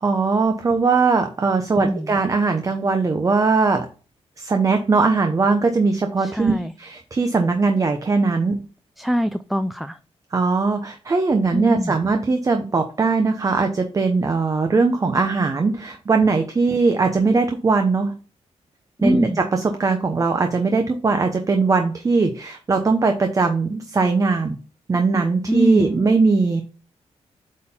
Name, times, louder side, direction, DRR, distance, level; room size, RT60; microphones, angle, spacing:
voice 1, 0.0-3.9 4.4-8.7 10.3-18.2 19.0-24.6 24.9-26.6, right 4 dB, 30° right, 6 dB, 0.8 m, -20 dB
voice 2, 1.8-2.2 6.2-6.7 9.0-10.0 11.5-12.0 19.0-19.4 25.5-26.0, equal, ahead, 11 dB, 0.4 m, -23 dB
8.4 x 4.4 x 3.7 m, 0.37 s
wide cardioid pair, 130°, 12 cm